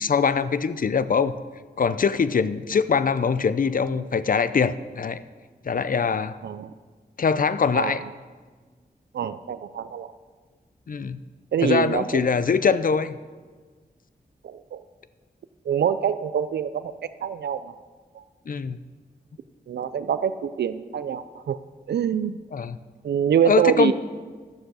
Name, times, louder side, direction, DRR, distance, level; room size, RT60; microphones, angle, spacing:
voice 1, 0.0-1.4 1.8-5.2 5.6-6.4 7.2-8.0 10.9-11.2 11.6-13.1 18.5-18.8 22.5-22.8 23.4-23.9, left 5 dB, 55° left, 14 dB, 0.5 m, -23 dB
voice 2, 7.7-8.1 9.1-10.1 11.5-12.3 14.4-14.8 15.7-16.9 17.2-17.8 18.2-18.3 19.7-21.6 21.9-22.4 23.0-23.9, right 8 dB, 80° right, 13 dB, 0.4 m, -25 dB
11.5 x 7.1 x 6.3 m, 1.5 s
cardioid pair, 55°, 17 cm